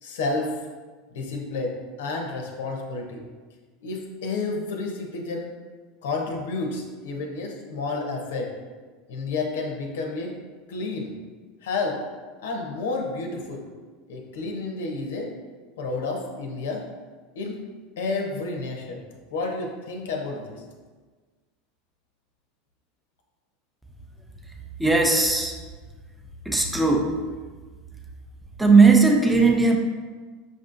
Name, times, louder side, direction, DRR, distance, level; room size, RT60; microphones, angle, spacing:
voice 1, 0.0-0.5 1.1-3.3 3.8-5.5 6.0-8.5 9.1-10.3 10.7-11.1 11.6-12.0 12.4-13.7 14.1-15.3 15.8-16.8 17.3-17.6 18.0-19.0 19.3-20.6, left 3 dB, 85° left, 1 dB, 0.6 m, -30 dB
voice 2, 24.8-25.6 26.5-27.1 28.6-29.8, right 4 dB, 5° right, 2 dB, 0.4 m, -17 dB
5.1 x 2.6 x 2.5 m, 1.4 s
supercardioid pair, 115°, 0 cm